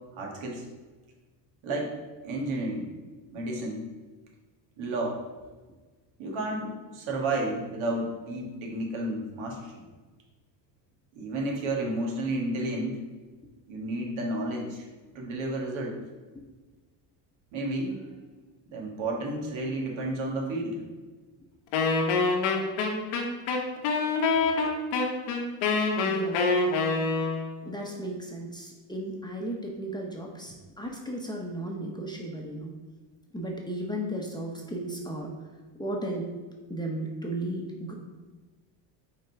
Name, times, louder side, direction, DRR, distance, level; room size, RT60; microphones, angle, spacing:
voice 1, 0.1-0.7 1.6-1.9 2.2-2.9 3.3-3.8 4.8-5.2 6.2-9.8 11.1-13.0 13.7-14.9 15.2-16.0 17.5-18.1 18.7-20.8, right 2 dB, 70° right, -1 dB, 1.8 m, -31 dB
Wind instrument woodwind instrument, 21.7-27.6, left 4 dB, 80° left, 1.2 m, -26 dB
voice 2, 26.0-26.4 27.6-32.7 33.3-35.3 35.8-36.2 36.7-37.9, right 1 dB, 10° left, -1 dB, 0.9 m, -35 dB
5.4 x 3.8 x 4.6 m, 1.3 s
cardioid pair, 100°, 50 cm